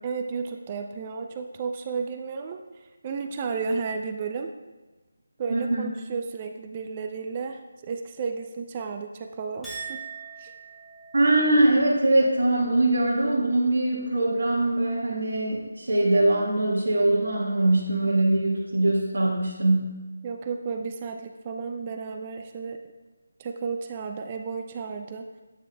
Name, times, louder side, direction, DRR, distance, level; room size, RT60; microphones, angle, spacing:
voice 1, 0.0-2.6 3.0-4.5 5.4-10.0 10.4-10.5 20.2-22.8 23.4-25.3, right 5 dB, 25° right, 5 dB, 0.4 m, -33 dB
voice 2, 5.5-5.9 11.1-20.0, right 2 dB, 70° right, -6 dB, 1.3 m, -22 dB
Chink clink, 9.6-16.2 16.6-17.2, right 5 dB, ahead, 0.9 m, -46 dB
8.9 x 4.9 x 2.3 m, 1.2 s
figure-of-eight pair, 160°, 0 cm